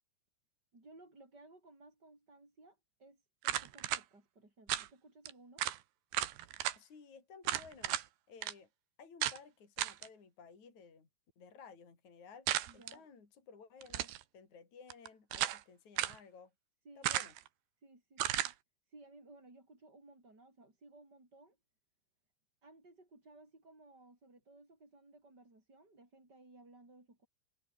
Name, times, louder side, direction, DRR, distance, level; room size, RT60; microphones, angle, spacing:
voice 1, 0.7-5.7 12.7-13.1 16.8-17.2 17.8-18.5 18.9-21.6 22.6-27.3, right 2 dB, 20° right, 7.7 m, -59 dB
sound 1, 3.4-4.0 4.7-4.9 5.3-5.4 5.6-5.8 6.1-6.8 7.5-8.1 8.4-8.5 9.2-9.4 9.8-10.1 12.5-13.0 13.8-14.2 14.9-15.6 16.0-16.2 17.0-17.5 18.2-18.5, right 13 dB, 80° right, 3.5 m, -35 dB
voice 2, 6.8-8.7 9.0-11.1 11.4-12.5 12.7-16.5 17.0-17.3, left 5 dB, 45° left, 5.7 m, -56 dB
omnidirectional pair, 5.0 m